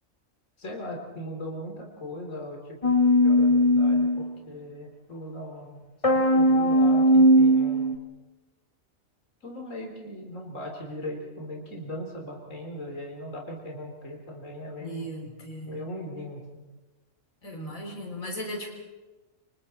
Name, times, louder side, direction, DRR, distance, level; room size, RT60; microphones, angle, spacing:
voice 1, 0.6-7.9 9.4-15.1 15.7-16.6, left 1 dB, 70° left, 0 dB, 3.9 m, -39 dB
sound 1, 2.8-4.3 6.0-7.9, equal, 25° left, 2.4 m, -19 dB
voice 2, 14.8-15.8 17.4-18.7, equal, 85° left, 1 dB, 4.1 m, -37 dB
28.5 x 26.0 x 4.4 m, 1.2 s
omnidirectional pair, 1.4 m